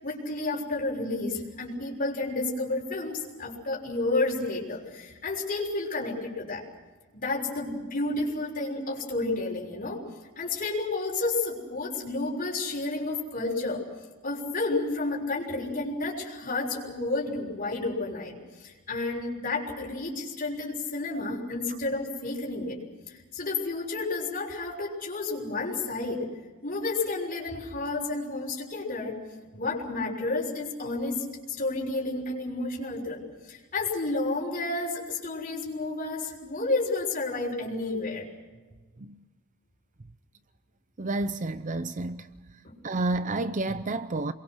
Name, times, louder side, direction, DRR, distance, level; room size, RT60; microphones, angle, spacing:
voice 1, 0.0-6.6 7.1-10.0 10.4-13.9 14.2-22.8 23.1-26.3 26.6-29.2 29.5-38.2 42.6-42.7, left 2 dB, 40° left, 6.3 m, -31 dB
voice 2, 41.0-42.3 42.8-44.3, right 2 dB, 35° right, 0.6 m, -30 dB
27.5 x 22.5 x 6.3 m
head